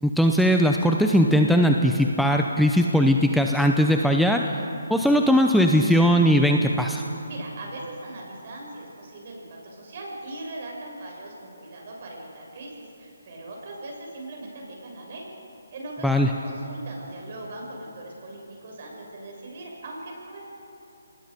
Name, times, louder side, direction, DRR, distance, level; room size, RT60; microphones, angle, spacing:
voice 1, 0.0-4.6 4.9-7.0 16.0-16.3, equal, ahead, 2 dB, 0.7 m, -19 dB
voice 2, 7.3-15.3 15.7-20.4, right 2 dB, 45° right, -1 dB, 6.7 m, -39 dB
25.0 x 20.5 x 5.2 m, 2.9 s
figure-of-eight pair, 155°, 0 cm